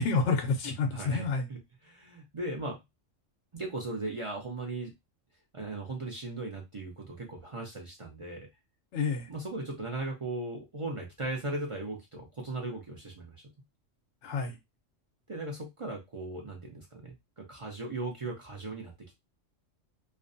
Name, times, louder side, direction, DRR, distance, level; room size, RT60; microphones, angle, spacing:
voice 1, 0.0-1.5 8.9-9.3 14.2-14.6, left 4 dB, 70° left, 0.8 m, -29 dB
voice 2, 0.9-1.2 1.5-1.6 1.8-2.8 3.5-4.9 5.5-8.5 9.3-13.4 15.3-18.9, right 2 dB, 50° right, 0.3 m, -37 dB
2.5 x 2.2 x 2.5 m
omnidirectional pair, 1.3 m